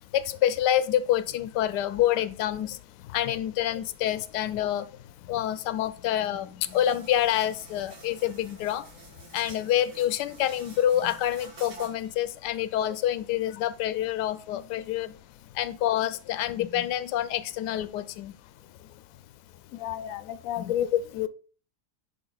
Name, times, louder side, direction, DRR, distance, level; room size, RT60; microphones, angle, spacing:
voice 1, 0.1-2.8 3.1-4.9 5.3-8.9 9.3-15.1 15.5-18.3 20.6-20.7, left 11 dB, 90° left, 1.2 m, -27 dB
sound 1, 6.6-12.1, right 3 dB, 65° right, 3.1 m, -49 dB
voice 2, 19.8-21.3, left 11 dB, 70° left, 0.9 m, -29 dB
10.5 x 3.6 x 4.0 m
omnidirectional pair, 1.8 m